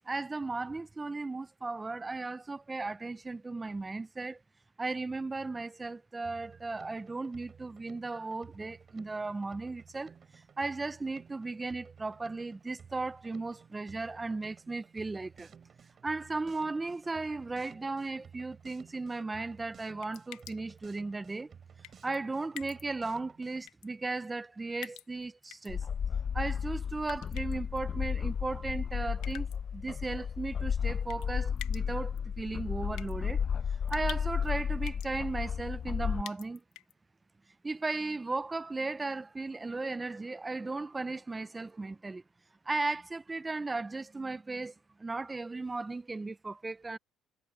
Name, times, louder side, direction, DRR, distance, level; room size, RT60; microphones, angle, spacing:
voice 1, 0.1-4.4 4.8-15.5 16.0-21.5 22.0-25.8 26.3-29.5 29.7-33.4 33.7-36.6 37.6-42.2 42.7-44.7 45.0-47.0, right 3 dB, 15° right, 0.5 m, -36 dB
Drum kit, 6.2-23.7, right 7 dB, 40° right, 6.4 m, -55 dB
sound 1, 20.0-20.8 21.8-22.2 22.6-22.8 23.7-23.9 24.8-25.7 27.0-27.8 29.2-29.6 31.1-31.3 31.6-31.8 32.2-32.3 33.0-33.1 33.9-34.5 34.9-35.1 36.2-36.9, left 15 dB, 85° left, 1.1 m, -46 dB
sound 2, 25.7-36.2, left 7 dB, 40° left, 0.4 m, -33 dB
cardioid pair, 125°, 0 cm